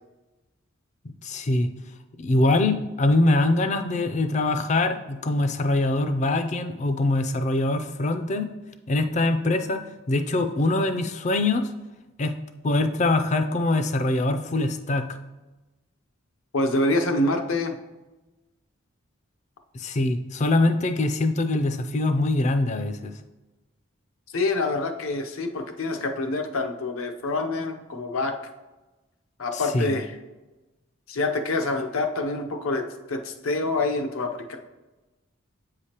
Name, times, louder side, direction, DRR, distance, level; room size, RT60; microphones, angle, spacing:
voice 1, 1.0-1.7 2.2-8.5 8.9-9.8 10.1-11.7 12.2-12.3 12.6-15.0 19.7-23.1 29.5-29.9, left 2 dB, 35° left, 8 dB, 0.4 m, -23 dB
voice 2, 16.5-17.8 24.3-28.4 29.4-30.1 31.1-34.6, left 2 dB, 80° left, 5 dB, 0.7 m, -26 dB
8.2 x 4.8 x 2.9 m, 1.1 s
head